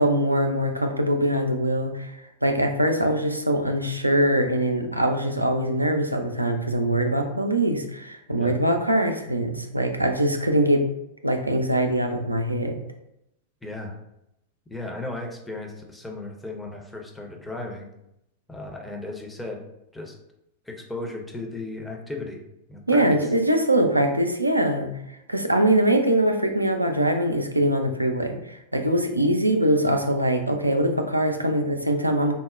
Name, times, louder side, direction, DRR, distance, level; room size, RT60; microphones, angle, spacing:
voice 1, 0.0-2.1 2.4-10.8 11.2-12.8 22.9-24.9 25.3-32.3, right 1 dB, 85° right, 4 dB, 0.3 m, -22 dB
voice 2, 13.6-14.0 14.7-17.9 18.5-19.6 19.9-20.1 20.7-22.4 22.7-23.3, left 2 dB, 5° left, 1 dB, 0.5 m, -35 dB
3.9 x 2.0 x 2.4 m, 0.83 s
figure-of-eight pair, 90°, 0 cm